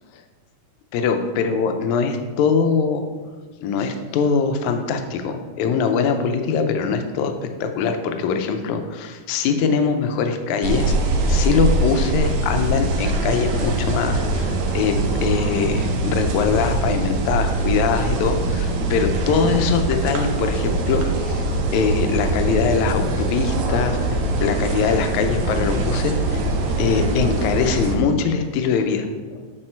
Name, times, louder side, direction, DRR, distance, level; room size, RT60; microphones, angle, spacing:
voice 1, 0.9-3.0 3.6-7.3 7.6-10.9 11.3-15.0 15.2-21.4 21.7-26.4 26.8-29.5, left 6 dB, 75° left, 6 dB, 1.9 m, -22 dB
sound 1, 10.6-27.9, right 2 dB, 70° right, 2.2 m, -22 dB
8.7 x 4.2 x 4.4 m, 1.4 s
omnidirectional pair, 3.7 m